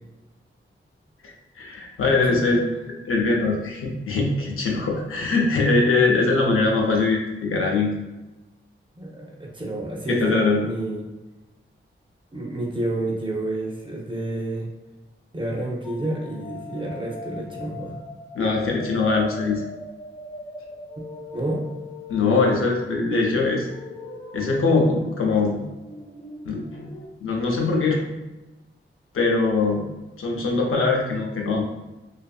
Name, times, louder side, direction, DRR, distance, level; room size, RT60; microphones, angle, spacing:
voice 1, 1.2-2.6 3.0-7.9 10.1-10.6 18.3-19.6 22.1-23.7 24.3-25.6 26.4-26.9 27.2-28.0 29.1-29.8 30.2-31.6, left 3 dB, 85° left, 0 dB, 0.5 m, -22 dB
voice 2, 2.0-2.6 9.0-11.1 12.3-14.7 15.3-18.0 21.3-21.6, right 1 dB, 25° right, 0 dB, 0.5 m, -30 dB
sound 1, 15.8-27.1, left 1 dB, 20° left, 0.6 m, -41 dB
2.6 x 2.5 x 2.3 m, 1.1 s
wide cardioid pair, 80°, 21 cm